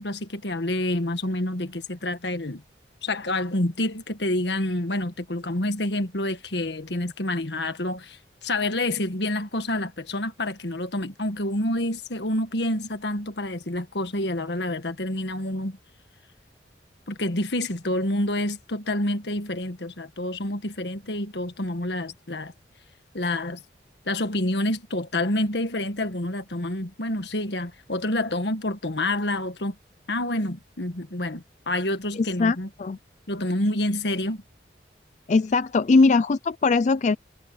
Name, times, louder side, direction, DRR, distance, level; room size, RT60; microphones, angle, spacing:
voice 1, 0.0-2.6 3.0-15.8 17.1-22.5 23.1-23.6 24.1-29.8 30.1-32.7 33.3-34.4, left 1 dB, 75° left, 1.7 m, -28 dB
voice 2, 32.2-33.0 35.3-37.2, left 3 dB, 40° left, 0.4 m, -21 dB
head